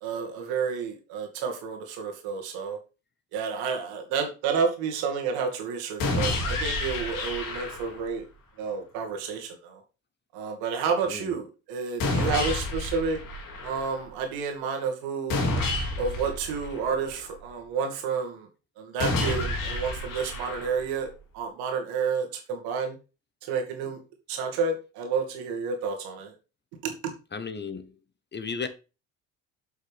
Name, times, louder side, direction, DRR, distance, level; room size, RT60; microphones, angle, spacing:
voice 1, 0.0-2.8 3.3-8.3 8.6-9.8 10.3-13.2 13.6-15.4 16.0-18.5 18.8-21.1 21.3-23.0 23.4-24.0 24.3-26.4 26.8-27.1, right 5 dB, 70° right, 2.2 m, -30 dB
sound 1, 6.0-8.0 12.0-14.0 15.3-17.3 19.0-21.0, left 2 dB, 55° left, 2.5 m, -29 dB
voice 2, 27.3-27.9 28.3-28.7, left 5 dB, 25° left, 1.1 m, -34 dB
7.4 x 5.7 x 3.5 m
hypercardioid pair, 60°, 38 cm